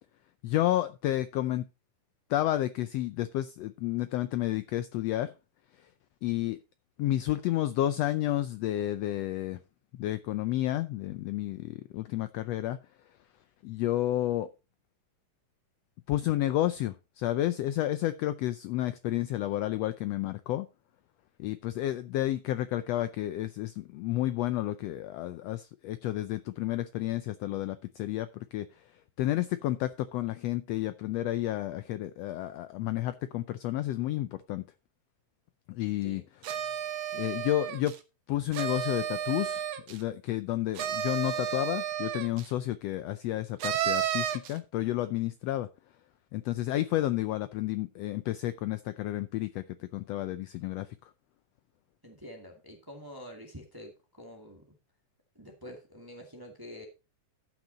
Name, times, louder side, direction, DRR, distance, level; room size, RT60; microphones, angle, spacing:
voice 1, 0.4-1.7 2.3-5.3 6.2-6.6 7.0-9.6 10.0-12.8 13.6-14.5 16.1-20.7 21.4-28.7 29.2-34.6 35.7-36.2 37.1-37.9 38.3-45.7 46.3-50.9, left 14 dB, 80° left, 1.5 m, -31 dB
sound 1, 36.4-38.0 38.5-40.0 40.8-42.5 43.6-44.6, right 10 dB, 65° right, 1.9 m, -32 dB
voice 2, 52.0-54.6 55.3-56.8, equal, 10° right, 1.6 m, -47 dB
13.0 x 6.1 x 4.1 m
omnidirectional pair, 3.4 m